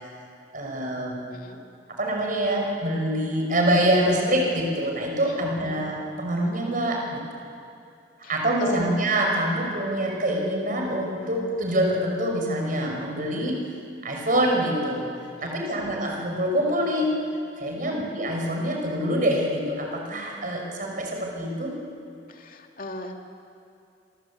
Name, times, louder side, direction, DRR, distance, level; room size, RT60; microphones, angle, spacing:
voice 1, 0.5-1.3 2.0-7.2 8.3-13.6 14.0-15.1 15.4-17.1 17.6-21.7, right 1 dB, 50° right, 1 dB, 5.9 m, -25 dB
voice 2, 1.3-1.6 5.4-5.8 8.2-8.3 8.6-9.0 15.4-15.8 17.8-18.1 22.3-23.2, left 2 dB, 50° left, 3 dB, 2.5 m, -38 dB
27.5 x 25.0 x 8.6 m, 2.5 s
head